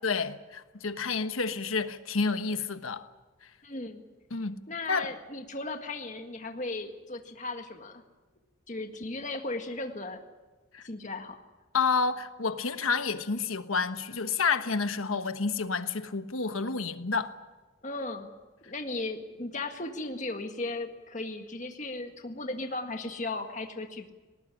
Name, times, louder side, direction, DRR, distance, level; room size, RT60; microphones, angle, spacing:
voice 1, 0.0-3.1 4.3-4.6 4.9-5.1 10.7-10.8 11.7-17.3, left 4 dB, 90° left, 1.3 m, -29 dB
voice 2, 3.6-4.0 4.7-8.0 8.7-10.2 10.8-11.4 17.8-18.3 18.6-24.1, left 2 dB, 35° left, 1.9 m, -36 dB
19.5 x 19.0 x 9.9 m
head